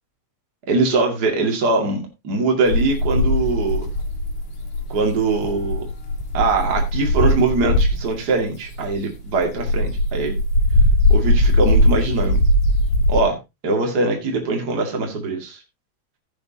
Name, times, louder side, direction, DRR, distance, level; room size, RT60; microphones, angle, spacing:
voice 1, 0.7-3.9 4.9-5.8 6.3-10.3 11.1-12.4 13.1-13.4 13.6-15.6, right 3 dB, 70° right, 2 dB, 0.9 m, -22 dB
sound 1, 2.7-8.2 8.6-13.2, left 1 dB, 45° left, 4.0 m, -19 dB
15.5 x 8.5 x 2.8 m, 0.23 s
omnidirectional pair, 5.9 m